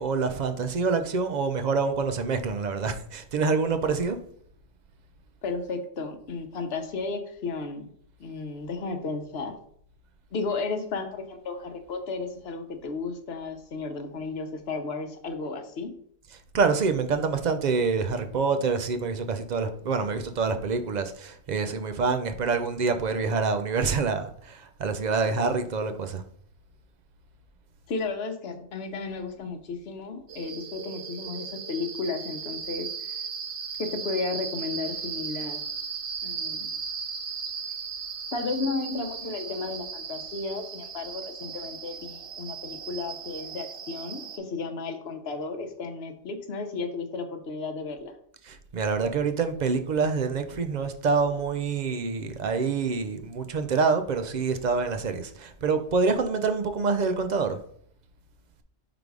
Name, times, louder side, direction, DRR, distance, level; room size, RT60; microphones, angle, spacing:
voice 1, 0.0-4.2 16.3-26.2 48.4-57.6, right 4 dB, 50° right, 0.6 m, -26 dB
voice 2, 5.4-7.9 8.2-9.5 10.3-15.9 27.9-33.2 33.8-35.6 36.2-36.7 38.3-48.1, left 4 dB, 70° left, 1.0 m, -33 dB
sound 1, 30.3-44.4, right 6 dB, 85° right, 1.0 m, -37 dB
5.1 x 3.9 x 4.7 m
omnidirectional pair, 1.1 m